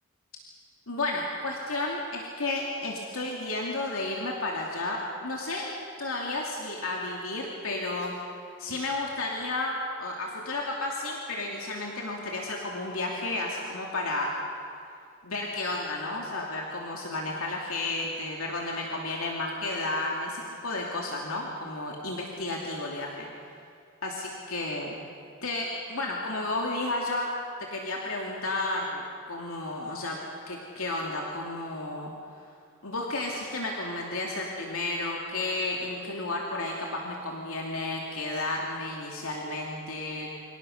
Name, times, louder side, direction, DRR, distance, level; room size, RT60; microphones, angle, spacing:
voice 1, 0.9-5.7 6.0-8.1 8.6-14.3 15.2-23.3 24.0-24.9 25.4-27.3 27.6-30.2 30.5-32.1 32.8-40.4, left 2 dB, 75° left, -1 dB, 2.8 m, -32 dB
28.5 x 25.5 x 6.6 m, 2.4 s
head